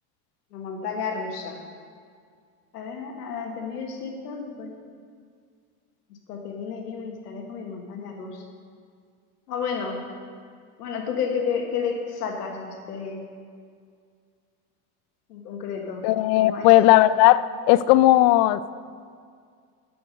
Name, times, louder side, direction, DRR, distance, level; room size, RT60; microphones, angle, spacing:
voice 1, 0.5-1.6 2.7-4.7 6.3-8.4 9.5-10.0 10.8-13.2 15.3-16.0 16.4-16.7, left 6 dB, 90° left, 2 dB, 1.8 m, -31 dB
voice 2, 16.0-18.6, left 15 dB, 55° left, 16 dB, 0.5 m, -17 dB
10.0 x 7.1 x 6.5 m, 2.1 s
supercardioid pair, 100°, 45 cm